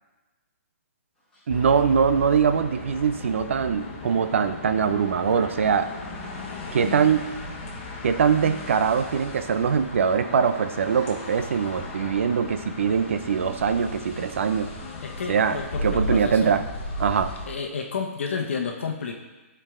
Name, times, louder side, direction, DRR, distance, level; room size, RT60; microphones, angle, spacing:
sound 1, 1.2-3.3 3.6-16.7 17.1-17.3 17.8-17.9, left 4 dB, 5° left, 2.2 m, -48 dB
sound 2, 1.5-17.5, left 1 dB, 25° left, 1.4 m, -36 dB
voice 1, 1.5-5.9 6.7-7.3 8.0-14.7 15.3-15.6 15.8-16.6 17.0-17.3, right 6 dB, 60° right, 10 dB, 0.6 m, -22 dB
voice 2, 15.0-16.5 17.5-19.1, left 5 dB, 55° left, 2 dB, 1.0 m, -31 dB
12.0 x 4.7 x 3.7 m, 1.1 s
hypercardioid pair, 170°, 8 cm